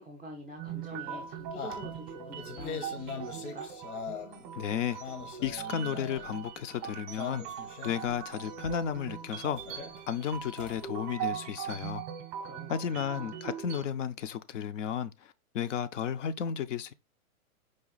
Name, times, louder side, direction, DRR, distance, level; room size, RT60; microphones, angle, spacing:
voice 1, 0.0-3.7 12.4-13.3, right 1 dB, ahead, 0.4 m, -46 dB
sound 1, 0.6-13.9, right 9 dB, 25° right, 0.7 m, -41 dB
sound 2, 0.7-4.5 4.9-6.5 7.1-8.2 8.6-9.0 9.5-10.9, left 6 dB, 75° left, 1.0 m, -42 dB
voice 2, 4.5-5.0 5.4-9.8 10.1-12.0 12.7-16.9, left 8 dB, 55° left, 0.5 m, -33 dB
5.0 x 2.3 x 3.9 m
hypercardioid pair, 140°, 45 cm